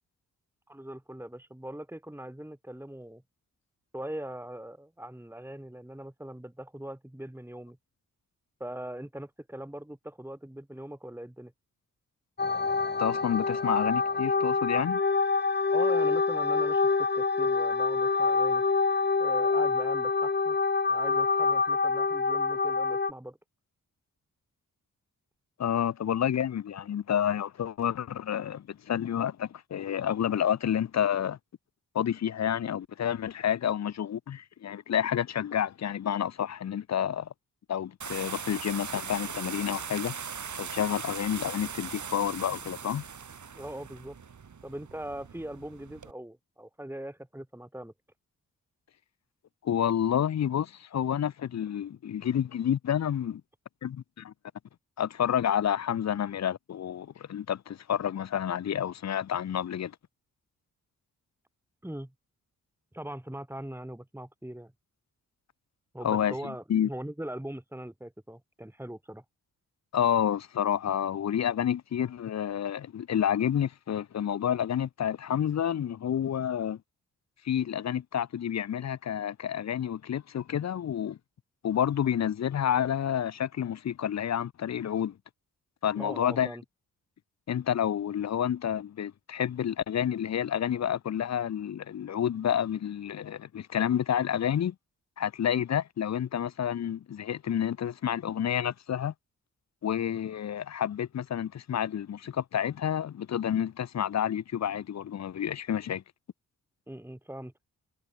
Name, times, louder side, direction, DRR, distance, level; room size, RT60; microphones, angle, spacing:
voice 1, 0.7-3.2 3.9-7.8 8.6-11.5 15.7-18.6 19.2-20.6 20.9-23.4 43.5-44.2 44.6-47.9 61.8-62.1 62.9-64.7 65.9-69.2 86.0-86.6 106.9-107.5, right 1 dB, 5° right, 6.0 m, -41 dB
sound 1, 12.4-23.1, left 4 dB, 30° left, 1.7 m, -26 dB
voice 2, 13.0-15.0 25.6-31.4 31.9-37.3 37.7-40.1 40.6-43.0 49.6-53.4 53.8-54.3 55.0-59.9 66.0-66.9 69.9-76.8 77.4-81.2 81.6-85.1 85.8-86.5 87.5-94.7 95.2-99.1 99.8-106.0, left 9 dB, 50° left, 0.7 m, -29 dB
sound 2, 38.0-46.1, right 6 dB, 55° right, 3.6 m, -40 dB
cardioid pair, 70°, 35 cm